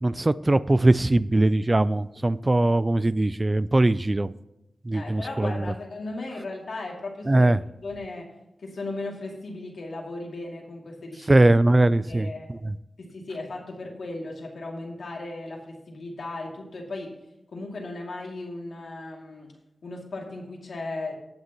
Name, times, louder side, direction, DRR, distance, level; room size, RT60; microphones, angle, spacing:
voice 1, 0.0-4.3 4.8-5.6 7.3-7.6 11.3-12.3 12.6-12.7, right 2 dB, 30° right, 16 dB, 0.4 m, -21 dB
voice 2, 4.9-7.5 7.8-11.6 12.1-12.5 13.0-17.2 17.5-19.6 19.8-21.2, left 2 dB, 85° left, -1 dB, 2.5 m, -36 dB
18.0 x 6.6 x 3.0 m, 0.95 s
wide cardioid pair, 80°, 0 cm